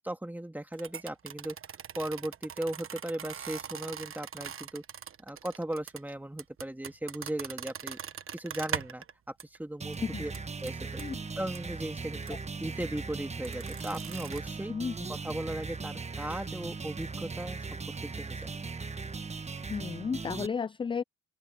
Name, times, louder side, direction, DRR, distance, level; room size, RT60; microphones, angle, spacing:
voice 1, 0.0-1.6 1.9-4.8 5.2-8.0 8.3-9.0 9.4-10.3 10.6-11.0 11.4-14.7 15.1-18.5, right 1 dB, 5° right, 2.4 m, -37 dB
sound 1, 0.7-9.1 9.4-9.6 9.9-10.0 10.3-11.0 11.5-11.6 12.2-12.4 13.4-14.4, right 8 dB, 45° right, 1.3 m, -41 dB
sound 2, 9.8-20.5, right 4 dB, 20° right, 1.3 m, -39 dB
voice 2, 14.7-15.1 19.7-21.0, left 6 dB, 20° left, 0.3 m, -33 dB
open air
cardioid pair, 90°, 30 cm